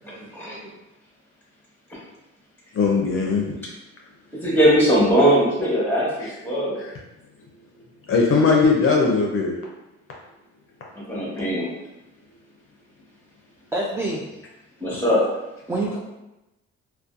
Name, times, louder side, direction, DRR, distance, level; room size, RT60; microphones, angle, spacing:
voice 1, 0.0-0.7 13.7-14.3 15.7-16.0, right 2 dB, 10° right, -4 dB, 0.3 m, -28 dB
voice 2, 2.7-3.5 6.2-6.3 6.8-6.9 8.1-9.5, left 4 dB, 45° left, -1 dB, 0.5 m, -19 dB
voice 3, 4.4-6.8 11.1-11.7 14.8-15.2, equal, 5° left, -5 dB, 1.0 m, -20 dB
2.5 x 2.2 x 2.4 m, 0.95 s
cardioid pair, 90°, 30 cm